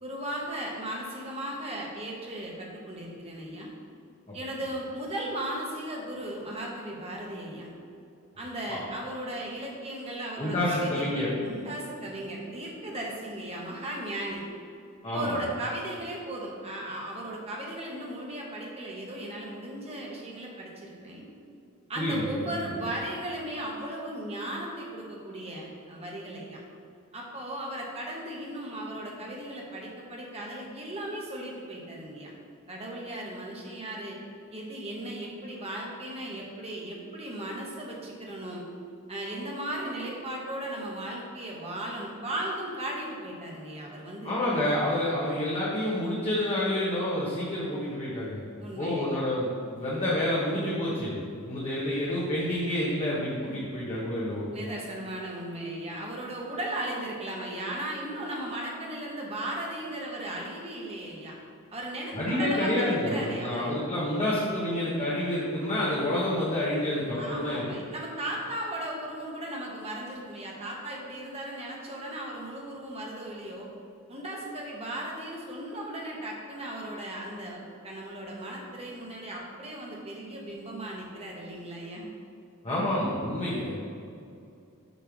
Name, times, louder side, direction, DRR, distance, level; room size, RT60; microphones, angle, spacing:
voice 1, 0.0-3.7 4.3-7.7 8.4-14.4 15.1-21.2 21.9-26.6 27.1-32.3 32.7-34.2 34.5-38.6 39.1-44.4 48.6-49.2 53.4-53.6 54.5-61.4 61.7-63.7 67.1-73.7 74.1-82.1, right 1 dB, 25° right, -2 dB, 1.3 m, -36 dB
voice 2, 10.4-11.3 15.0-15.3 22.0-22.6 44.2-48.4 48.8-51.1 51.4-54.5 62.1-67.6 82.6-83.8, left 1 dB, 25° left, -8 dB, 1.2 m, -28 dB
8.2 x 3.5 x 6.0 m, 2.5 s
head